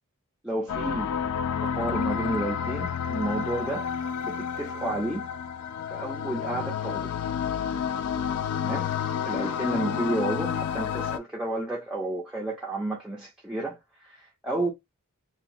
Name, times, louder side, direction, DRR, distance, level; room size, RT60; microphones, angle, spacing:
voice 1, 0.4-1.1 1.6-5.2 5.9-7.2 8.6-8.9 9.2-14.7, right 1 dB, 5° right, 0.5 m, -31 dB
sound 1, 0.7-11.2, left 7 dB, 85° left, 0.3 m, -30 dB
2.8 x 2.2 x 2.6 m
head